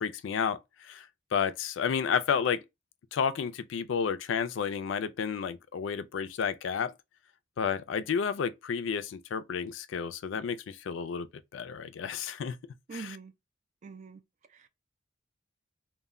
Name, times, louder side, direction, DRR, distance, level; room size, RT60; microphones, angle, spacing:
voice 1, 0.0-2.6 3.1-6.9 7.6-11.3 11.5-12.6 12.9-13.2, left 7 dB, 85° left, 0.4 m, -31 dB
voice 2, 12.9-13.3 13.8-14.2 14.5-14.7, right 5 dB, 40° right, 0.3 m, -43 dB
2.2 x 2.1 x 3.5 m
head